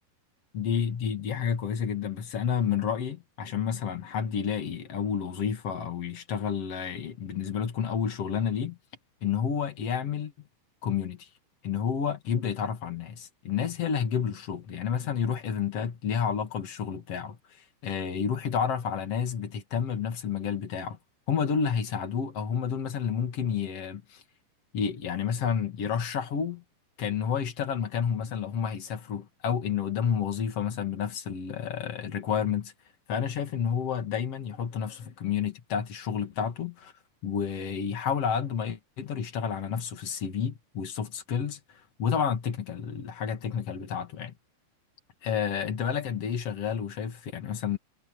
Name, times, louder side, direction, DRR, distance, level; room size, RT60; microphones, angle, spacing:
voice 1, 0.5-8.8 9.2-10.3 10.8-11.3 11.6-21.0 21.3-24.2 24.7-26.6 27.0-32.7 33.1-36.9 37.2-44.3 45.2-47.8, left 7 dB, 90° left, 1.3 m, -30 dB
omnidirectional pair, 6.0 m